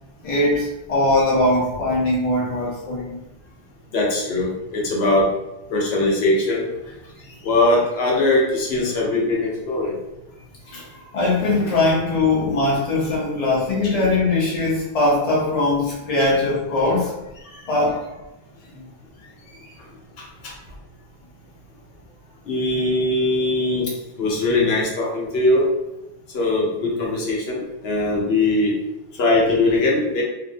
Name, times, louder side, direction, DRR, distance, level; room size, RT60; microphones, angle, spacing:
voice 1, 0.2-3.2 10.7-17.1 17.7-18.0 18.7-18.8, left 2 dB, 40° left, -6 dB, 0.8 m, -21 dB
voice 2, 3.9-5.3 5.7-6.7 7.4-10.0 22.5-23.9 24.2-25.7 26.3-28.7 29.1-30.2, left 2 dB, 85° left, -3 dB, 0.9 m, -20 dB
2.5 x 2.0 x 2.6 m, 0.94 s
omnidirectional pair, 1.0 m